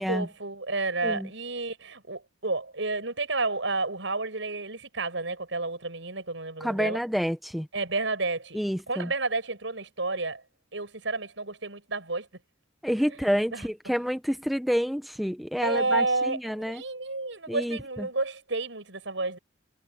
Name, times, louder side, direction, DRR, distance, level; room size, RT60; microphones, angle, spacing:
voice 1, 0.0-7.0 7.7-8.6 8.9-10.4 10.7-12.3 13.1-13.7 15.6-19.4, right 3 dB, 85° right, 6.3 m, -31 dB
voice 2, 6.6-7.7 8.5-9.1 12.8-16.8 17.5-18.1, equal, ahead, 1.0 m, -28 dB
head